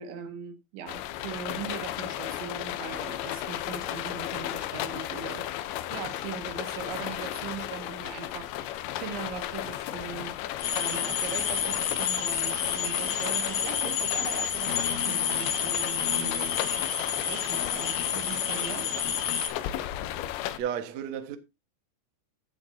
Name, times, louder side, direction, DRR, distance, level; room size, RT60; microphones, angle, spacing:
voice 1, 0.0-5.5 5.9-8.6 9.0-10.4 10.7-18.9, right 7 dB, 85° right, 4.1 m, -40 dB
sound 1, 0.9-20.6, left 13 dB, 85° left, 3.1 m, -35 dB
sound 2, 10.6-19.5, left 8 dB, 55° left, 2.6 m, -29 dB
voice 2, 20.6-21.4, right 9 dB, 65° right, 1.8 m, -32 dB
17.0 x 7.1 x 2.7 m
omnidirectional pair, 5.2 m